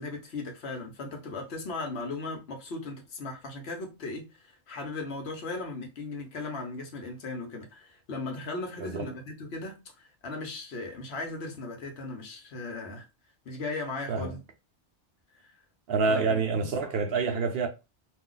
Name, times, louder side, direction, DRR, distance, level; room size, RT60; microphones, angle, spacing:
voice 1, 0.0-9.8 10.2-13.0 13.5-14.4 16.1-16.7, left 3 dB, 70° left, 1.0 m, -37 dB
voice 2, 8.8-9.1 14.1-14.4 15.9-17.7, right 4 dB, 65° right, 0.8 m, -27 dB
2.5 x 2.3 x 3.8 m
omnidirectional pair, 1.2 m